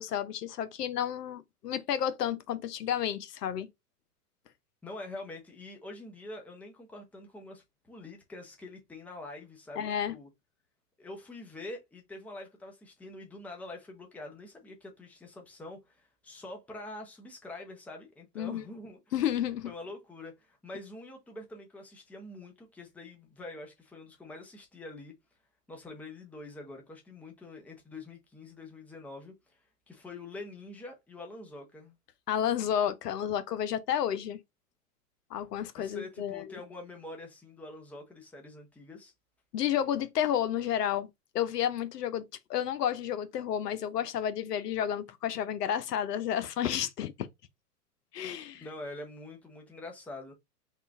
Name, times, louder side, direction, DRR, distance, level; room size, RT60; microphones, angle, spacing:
voice 1, 0.0-3.7 9.8-10.1 18.4-18.6 19.1-19.7 32.3-34.4 35.3-36.6 39.5-41.1 41.3-42.2 42.5-47.1 48.1-48.7, left 10 dB, 80° left, 0.7 m, -31 dB
voice 2, 4.8-10.3 11.0-19.2 19.6-25.1 25.7-29.6 29.9-31.9 35.8-39.1 48.6-50.3, left 2 dB, 5° left, 0.7 m, -45 dB
3.7 x 2.4 x 3.5 m
hypercardioid pair, 120°, 47 cm